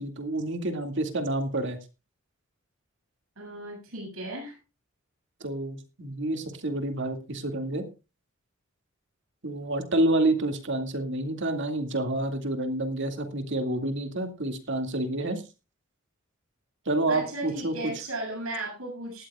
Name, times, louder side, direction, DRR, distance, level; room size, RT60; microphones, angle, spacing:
voice 1, 0.0-1.8 5.4-7.8 9.4-15.4 16.9-17.7, right 1 dB, 60° right, 6 dB, 2.3 m, -28 dB
voice 2, 3.4-4.6 17.1-19.3, right 1 dB, 90° right, 0 dB, 7.8 m, -36 dB
19.0 x 13.5 x 2.4 m, 0.30 s
head